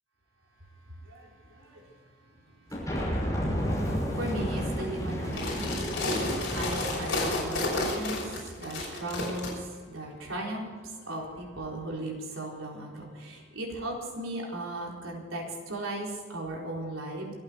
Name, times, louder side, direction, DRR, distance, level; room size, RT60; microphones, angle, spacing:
voice 1, 0.8-17.3, right 1 dB, 90° right, -2 dB, 4.2 m, -38 dB
sound 1, 2.7-7.7, equal, 15° left, 6.0 m, -32 dB
sound 2, 5.2-9.5, left 2 dB, 60° left, 6.0 m, -31 dB
25.5 x 9.0 x 5.2 m, 1.5 s
head